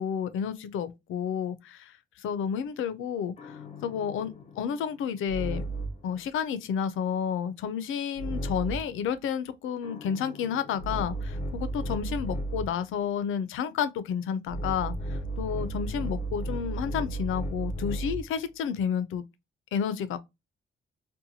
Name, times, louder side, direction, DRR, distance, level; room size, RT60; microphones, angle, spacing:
voice 1, 0.0-1.9 2.2-5.6 6.0-19.2 19.7-20.2, left 8 dB, 90° left, 0.4 m, -31 dB
sound 1, 3.4-6.1 8.2-9.0 9.8-12.8 14.5-18.4, right 2 dB, 35° left, 0.5 m, -34 dB
2.8 x 2.2 x 2.6 m
wide cardioid pair, 165°, 20 cm